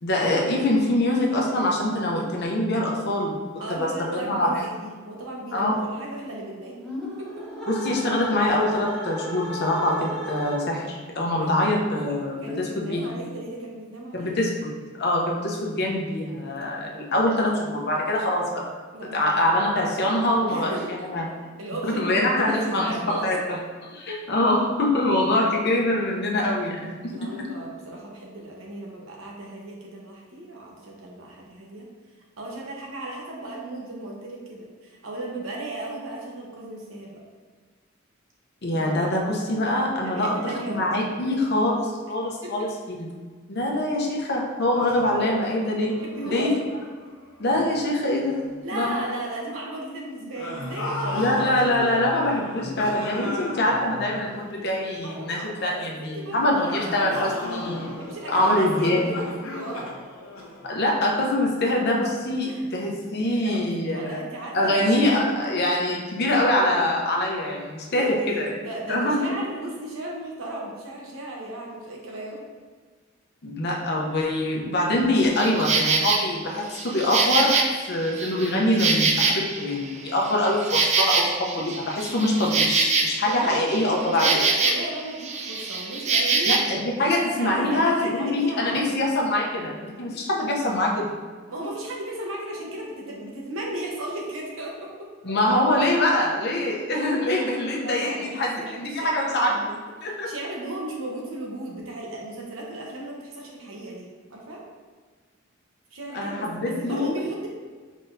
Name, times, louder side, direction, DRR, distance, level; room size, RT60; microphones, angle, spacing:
voice 1, 0.0-3.4 3.8-4.7 5.5-5.7 7.7-13.1 14.1-14.7 15.0-18.7 19.1-21.2 21.8-27.5 38.6-43.1 43.5-46.0 46.2-46.6 47.4-48.4 48.7-49.0 51.1-57.9 58.3-59.1 60.6-68.5 68.9-69.3 73.4-84.4 86.5-91.1 95.2-99.7 100.0-100.3 106.1-107.2, left 1 dB, 55° left, -1 dB, 0.8 m, -24 dB
voice 2, 3.6-6.8 7.2-7.5 11.4-11.5 12.4-14.3 18.9-19.4 20.5-21.0 21.6-23.4 27.1-31.9 32.4-37.2 38.7-39.0 39.9-40.8 42.4-42.7 46.0-46.5 48.6-51.7 55.0-55.5 55.9-57.2 58.0-59.2 59.5-59.8 62.5-62.6 63.4-64.9 67.9-72.4 82.1-82.4 83.2-86.5 87.0-88.9 91.5-95.1 96.5-96.8 97.7-99.7 100.0-104.6 105.9-107.5, right 1 dB, 80° right, -2 dB, 1.0 m, -35 dB
sound 1, 6.8-10.9, equal, 5° left, 0.9 m, -34 dB
sound 2, 44.7-47.9 48.2-48.5 50.3-55.0 56.6-61.2, left 1 dB, 85° left, 0.8 m, -35 dB
Insect, 75.3-76.2 76.7-79.7 80.1-85.0 85.2-86.7, right 4 dB, 35° right, 0.4 m, -24 dB
5.0 x 4.0 x 2.7 m, 1.5 s
head